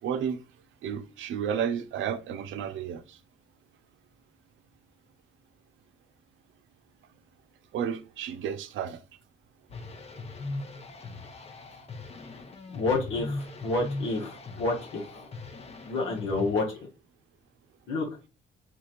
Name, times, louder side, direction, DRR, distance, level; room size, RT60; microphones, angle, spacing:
voice 1, 0.0-0.4 0.8-3.2 7.7-9.0, right 8 dB, 80° right, 0.6 m, -32 dB
sound 1, 9.7-16.6, left 3 dB, 30° left, 0.7 m, -39 dB
voice 2, 12.7-15.3 15.8-16.6 17.9-18.1, left 3 dB, 80° left, 1.0 m, -29 dB
3.9 x 2.9 x 2.4 m
cardioid pair, 90°, 20 cm